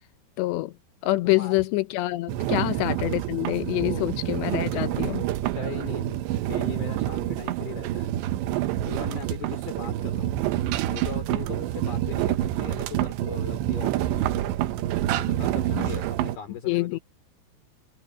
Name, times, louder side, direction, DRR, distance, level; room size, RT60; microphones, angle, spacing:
voice 1, 0.4-0.7 1.0-5.2 15.7-15.9 16.7-17.0, left 19 dB, 80° left, 3.0 m, -26 dB
voice 2, 1.2-1.6 2.5-2.9 3.8-4.1 4.7-5.0 5.6-8.1 8.8-10.3 10.9-14.5 15.2-17.0, left 8 dB, 60° left, 4.8 m, -39 dB
sound 1, 2.3-16.4, right 13 dB, 80° right, 3.2 m, -27 dB
omnidirectional pair, 5.1 m